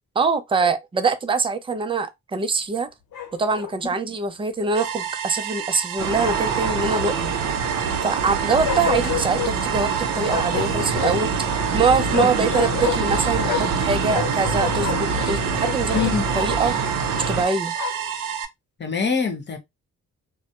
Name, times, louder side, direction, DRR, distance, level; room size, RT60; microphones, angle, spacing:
voice 1, 0.2-2.9 3.4-7.3 8.0-9.9 10.1-11.5 11.7-16.0 16.4-16.7 17.3-17.7, right 4 dB, 15° right, 0.4 m, -23 dB
Bark, 3.1-3.8 6.2-7.3 8.6-9.5 10.2-11.3 12.1-13.8 14.1-16.5 17.1-18.1, left 7 dB, 70° left, 0.9 m, -30 dB
sound 1, 4.7-18.5, right 8 dB, 90° right, 0.6 m, -29 dB
sound 2, 6.0-17.4, right 5 dB, 55° right, 0.7 m, -26 dB
voice 2, 12.2-12.5 15.9-16.3 18.8-19.6, left 6 dB, 35° left, 0.9 m, -24 dB
2.2 x 2.1 x 2.8 m
cardioid pair, 85°, 33 cm